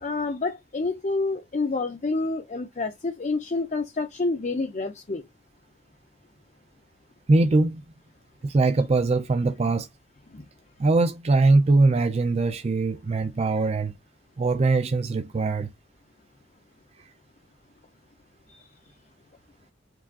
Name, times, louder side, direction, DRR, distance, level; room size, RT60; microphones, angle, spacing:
voice 1, 0.0-5.2 10.3-10.4 18.5-18.6, left 3 dB, 40° left, 0.6 m, -28 dB
voice 2, 7.3-7.8 8.4-9.9 10.8-13.9 14.4-15.7, right 3 dB, 35° right, 0.4 m, -21 dB
4.7 x 2.4 x 3.6 m
head